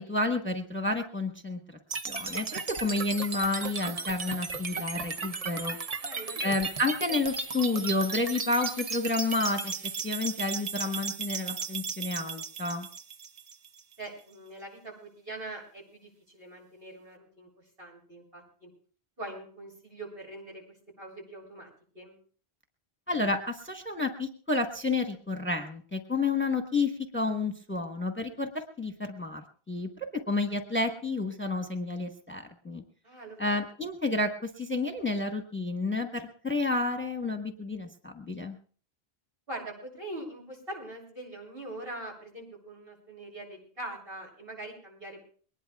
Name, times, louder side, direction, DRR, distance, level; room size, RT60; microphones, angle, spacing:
voice 1, 0.0-1.6 1.9-5.8 6.4-9.7 10.0-12.9 23.1-29.4 29.7-32.8 33.4-38.6, left 3 dB, 10° left, 4 dB, 1.2 m, -30 dB
sound 1, 1.9-13.9, right 5 dB, 40° right, 0.8 m, -35 dB
voice 2, 6.0-6.6 14.0-17.5 17.8-18.7 19.2-20.6 21.0-21.7 21.9-22.1 33.0-33.6 39.5-45.3, right 1 dB, 65° right, -2 dB, 8.0 m, -43 dB
22.5 x 20.0 x 2.4 m, 0.44 s
omnidirectional pair, 1.1 m